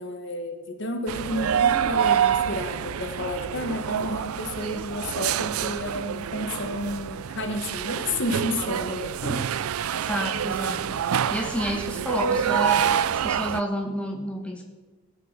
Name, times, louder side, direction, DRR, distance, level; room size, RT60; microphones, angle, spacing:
voice 1, 0.0-9.4, left 1 dB, 55° left, 6 dB, 1.4 m, -31 dB
sound 1, 1.1-13.6, right 8 dB, 85° right, 0.4 m, -27 dB
voice 2, 9.9-14.6, equal, 5° left, 1 dB, 1.5 m, -30 dB
18.0 x 6.5 x 6.7 m, 1.3 s
head